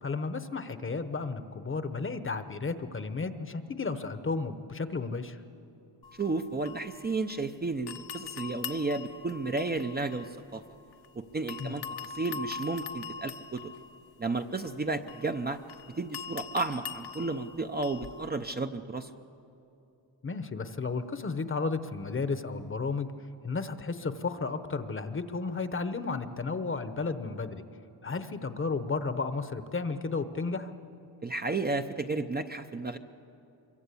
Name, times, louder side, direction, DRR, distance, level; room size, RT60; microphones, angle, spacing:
voice 1, 0.0-5.4 11.6-11.7 20.2-23.1 23.4-27.6 28.0-30.7, left 4 dB, 30° left, 10 dB, 0.9 m, -33 dB
sound 1, 6.0-7.5 7.9-11.1 11.5-18.3, left 7 dB, 60° left, 1.0 m, -43 dB
voice 2, 6.2-10.6 11.1-13.7 14.2-15.6 16.0-19.1 31.2-33.0, right 3 dB, 20° right, 6 dB, 0.6 m, -32 dB
25.0 x 23.5 x 8.4 m, 2.8 s
wide cardioid pair, 135°, 43 cm